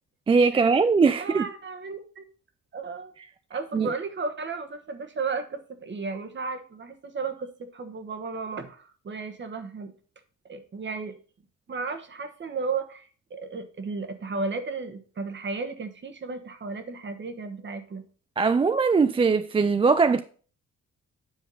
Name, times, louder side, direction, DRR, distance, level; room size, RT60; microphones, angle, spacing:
voice 1, 0.3-1.5 3.7-3.9 18.4-20.2, right 4 dB, 20° right, 0.3 m, -21 dB
voice 2, 1.1-2.2 2.7-3.1 3.5-9.9 10.5-11.1 11.7-18.0, right 4 dB, 40° right, 1.3 m, -34 dB
9.5 x 3.6 x 5.4 m
cardioid pair, 90°, 30 cm